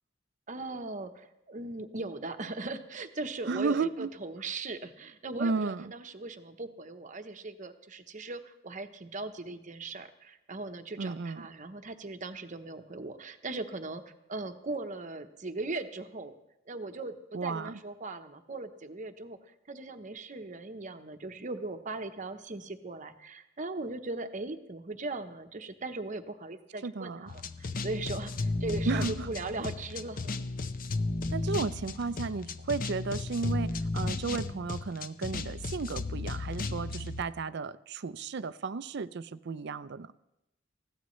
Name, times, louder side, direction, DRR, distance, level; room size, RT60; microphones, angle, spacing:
voice 1, 0.5-14.0 14.3-16.3 16.7-19.4 19.7-30.5, right 2 dB, 40° right, 7 dB, 0.9 m, -39 dB
voice 2, 3.5-4.1 5.4-5.9 11.0-11.4 17.3-17.8 26.8-27.3 28.9-29.3 31.3-40.1, right 4 dB, 60° right, 15 dB, 0.5 m, -33 dB
sound 1, 27.3-37.2, left 3 dB, 45° left, 0.6 m, -34 dB
20.5 x 15.5 x 3.2 m, 0.89 s
head